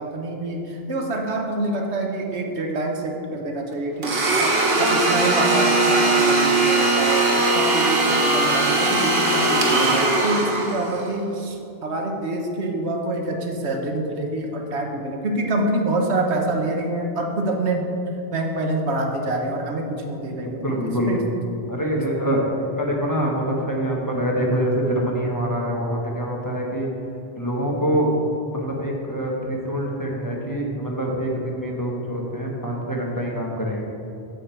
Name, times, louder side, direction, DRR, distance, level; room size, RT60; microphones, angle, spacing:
voice 1, 0.0-18.0 18.3-21.3, right 2 dB, 90° right, 2 dB, 1.3 m, -26 dB
Domestic sounds home sounds, 4.0-11.1, right 2 dB, 65° right, 1.4 m, -19 dB
voice 2, 20.4-21.2 21.7-26.9 27.4-28.1 28.5-33.8, equal, 20° left, -2 dB, 1.1 m, -25 dB
8.9 x 7.3 x 4.5 m, 2.7 s
omnidirectional pair, 1.1 m